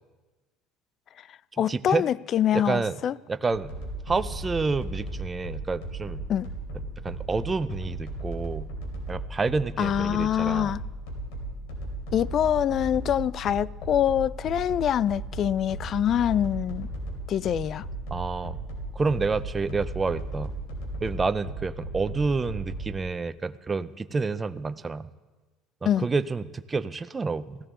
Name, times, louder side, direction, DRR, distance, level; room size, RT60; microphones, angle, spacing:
voice 1, 1.2-3.2 6.3-6.5 9.8-10.8 12.1-16.9 17.3-17.9 25.9-26.1, left 10 dB, 50° left, 0.3 m, -25 dB
voice 2, 1.7-2.0 2.5-3.0 3.3-3.7 4.1-6.2 7.0-8.7 9.1-10.7 18.1-18.6 18.9-20.5 21.0-25.1 25.8-27.6, right 4 dB, 20° right, 0.5 m, -29 dB
sound 1, 3.5-22.9, right 2 dB, 80° left, 3.4 m, -36 dB
16.5 x 14.0 x 3.8 m
supercardioid pair, 95°, 0 cm